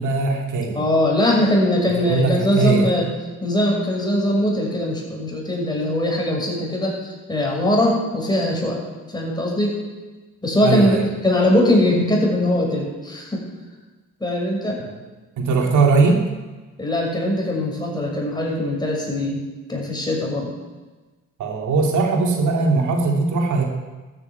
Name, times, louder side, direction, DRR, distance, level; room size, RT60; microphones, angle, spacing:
voice 1, 0.0-0.8 2.0-2.9 10.6-11.0 14.8-14.9 15.4-16.3 21.4-23.6, right 4 dB, 75° right, 2 dB, 2.6 m, -20 dB
voice 2, 0.7-3.1 3.4-8.8 9.1-9.8 10.4-13.4 14.2-14.8 16.8-19.4 19.7-20.5, left 1 dB, 15° left, -2 dB, 6.3 m, -21 dB
13.5 x 9.5 x 8.2 m, 1.2 s
cardioid pair, 90°, 30 cm